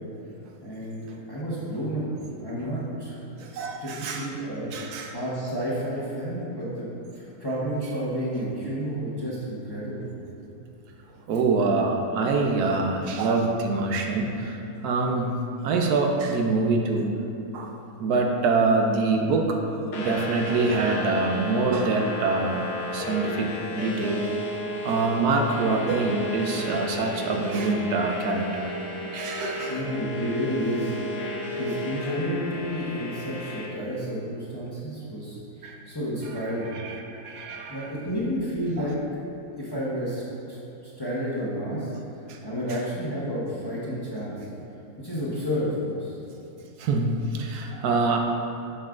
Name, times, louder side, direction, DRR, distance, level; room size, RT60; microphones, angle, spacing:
voice 1, 0.6-3.5 3.8-6.9 7.1-10.1 29.7-31.0 31.6-36.7 37.7-39.0 39.6-40.2 40.5-40.6 40.8-41.9 42.4-44.4 45.0-46.1, equal, 20° left, -8 dB, 0.9 m, -31 dB
voice 2, 3.4-4.3 4.7-5.1 11.3-17.1 17.5-17.7 18.0-23.5 23.7-24.2 24.8-28.7 29.1-29.8 35.6-35.8 36.7-37.9 38.8-38.9 42.3-42.4 46.8-48.2, right 3 dB, 80° right, 2 dB, 1.2 m, -25 dB
sound 1, 19.9-33.7, left 1 dB, 85° left, 1.4 m, -33 dB
7.2 x 6.5 x 2.5 m, 3.0 s
omnidirectional pair, 1.6 m